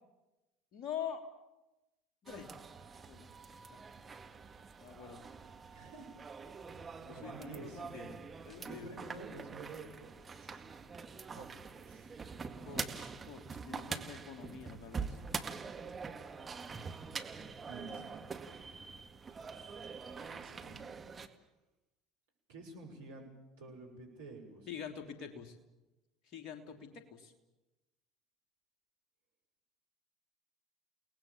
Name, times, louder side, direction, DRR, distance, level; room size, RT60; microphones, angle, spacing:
voice 1, 0.7-1.2 2.2-2.5 3.1-3.3 3.7-3.8 4.8-5.3 7.1-8.2 8.4-8.9 12.7-15.2 24.7-25.5 26.2-27.3, left 8 dB, 45° left, 5 dB, 3.3 m, -45 dB
sound 1, 2.3-21.3, right 5 dB, 25° right, 2.0 m, -45 dB
voice 2, 5.7-6.1 7.1-8.2 8.7-10.1 10.4-10.7 11.3-11.5 11.8-12.2 17.7-18.3 20.1-20.9 22.5-24.7, right 3 dB, 70° right, 1 dB, 6.4 m, -50 dB
29.5 x 19.0 x 7.4 m, 1.0 s
figure-of-eight pair, 65°, 0 cm